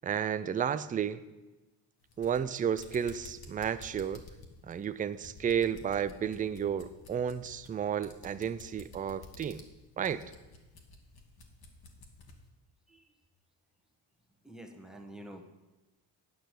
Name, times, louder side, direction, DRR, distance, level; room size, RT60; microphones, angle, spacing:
voice 1, 0.0-1.2 2.2-4.2 4.7-9.6 10.0-10.2, right 8 dB, 20° right, 14 dB, 0.3 m, -32 dB
sound 1, 2.0-12.4, left 2 dB, 50° left, 1.6 m, -52 dB
voice 2, 14.4-15.4, right 1 dB, ahead, 4 dB, 1.3 m, -48 dB
9.4 x 5.7 x 6.6 m, 1.1 s
cardioid pair, 85°, 47 cm